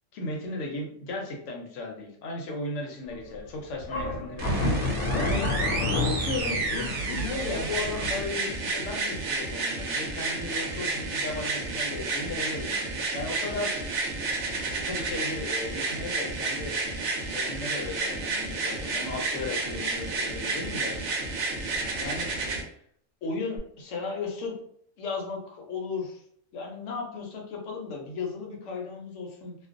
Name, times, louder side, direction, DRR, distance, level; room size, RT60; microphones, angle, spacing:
voice 1, 0.1-5.5 6.0-13.7 14.9-16.8 17.3-21.0 22.0-22.7 23.2-24.6 25.0-26.2 26.5-29.6, left 3 dB, 65° left, 0 dB, 0.9 m, -35 dB
sound 1, 3.1-3.4 3.8-8.2, left 2 dB, 90° left, 1.0 m, -30 dB
sound 2, 4.4-22.6 23.6-23.7, right 3 dB, 65° right, 0.8 m, -31 dB
2.4 x 2.0 x 2.4 m, 0.65 s
omnidirectional pair, 1.5 m